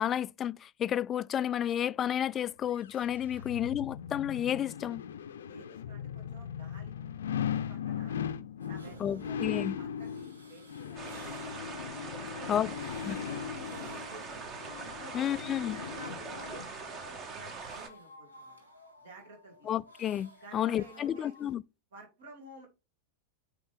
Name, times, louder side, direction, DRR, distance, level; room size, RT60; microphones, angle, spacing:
voice 1, 0.0-5.0 9.0-9.7 12.5-12.7 13.0-13.2 15.1-15.8 19.7-21.6, left 10 dB, 25° left, 0.3 m, -31 dB
sound 1, 2.8-16.7 17.1-17.2, left 8 dB, 65° left, 0.6 m, -39 dB
voice 2, 5.4-6.9 7.5-8.2 8.7-11.7 12.2-14.5 14.8-15.3 15.7-18.6 19.0-19.7 20.4-21.3 21.9-22.7, right 2 dB, 60° right, 2.9 m, -52 dB
sound 2, 8.6-21.5, equal, 80° right, 1.8 m, -54 dB
sound 3, 11.0-17.9, right 4 dB, 30° right, 1.5 m, -43 dB
7.8 x 4.6 x 3.5 m
figure-of-eight pair, 90°, 0 cm